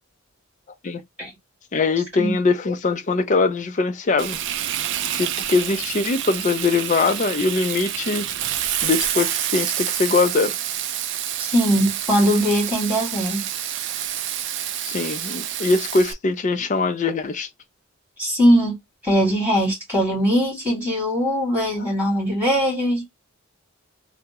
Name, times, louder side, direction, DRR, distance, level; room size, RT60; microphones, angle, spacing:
voice 1, 1.7-4.4 5.1-8.2 8.8-10.6 14.8-17.5, left 3 dB, 35° left, 0.4 m, -22 dB
Frying (food), 4.2-16.1, right 11 dB, 55° right, 0.3 m, -28 dB
voice 2, 11.4-13.5 18.2-18.8 19.0-23.0, equal, 10° right, 2.0 m, -20 dB
3.4 x 2.0 x 2.9 m
head